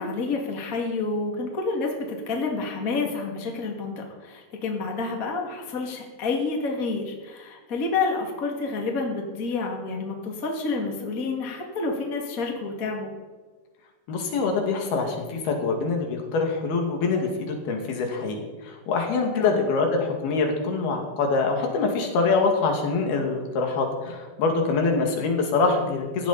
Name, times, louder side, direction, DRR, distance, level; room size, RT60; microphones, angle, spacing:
voice 1, 0.0-13.1 19.3-19.6, left 3 dB, 25° left, 1 dB, 2.3 m, -29 dB
voice 2, 14.1-26.3, left 4 dB, 80° left, 2 dB, 4.2 m, -24 dB
17.0 x 15.0 x 4.3 m, 1.4 s
omnidirectional pair, 4.4 m